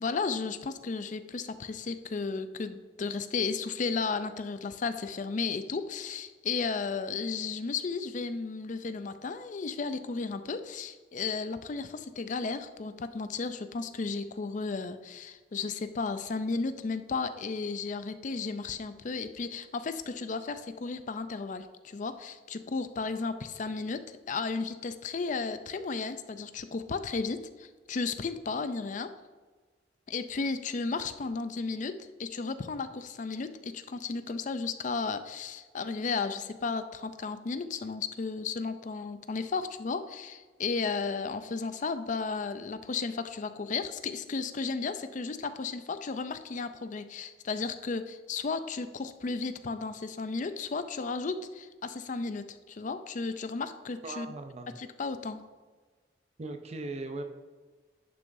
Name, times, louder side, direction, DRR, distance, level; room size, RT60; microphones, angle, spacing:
voice 1, 0.0-29.1 30.1-54.3 54.8-55.4, left 4 dB, 45° left, 11 dB, 0.4 m, -34 dB
voice 2, 54.0-54.7 56.4-57.2, right 2 dB, 40° right, 6 dB, 0.5 m, -38 dB
10.5 x 6.1 x 2.6 m, 1.4 s
head